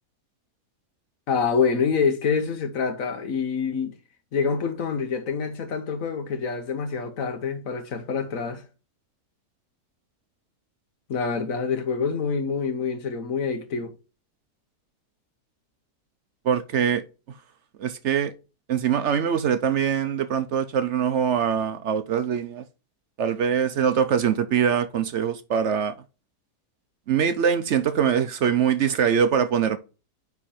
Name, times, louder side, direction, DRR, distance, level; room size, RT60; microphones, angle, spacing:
voice 1, 1.3-3.9 4.3-8.6 11.1-13.9, left 5 dB, 60° left, 1.3 m, -26 dB
voice 2, 16.4-17.0 17.8-18.3 18.7-22.6 23.2-25.9 27.1-29.8, right 8 dB, 65° right, 0.7 m, -23 dB
9.7 x 3.7 x 4.3 m
omnidirectional pair, 1.7 m